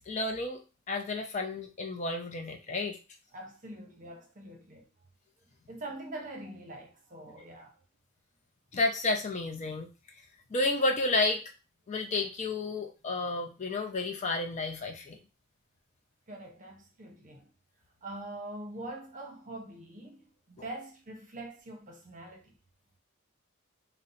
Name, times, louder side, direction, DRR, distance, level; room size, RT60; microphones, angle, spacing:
voice 1, 0.1-0.6 0.9-3.0 8.7-9.9 10.5-11.4 11.9-15.2, left 2 dB, 35° left, 0.4 m, -31 dB
voice 2, 3.3-4.9 5.7-7.8 16.3-17.5 18.0-22.6, right 1 dB, 35° right, 0.8 m, -44 dB
2.6 x 2.1 x 3.9 m
head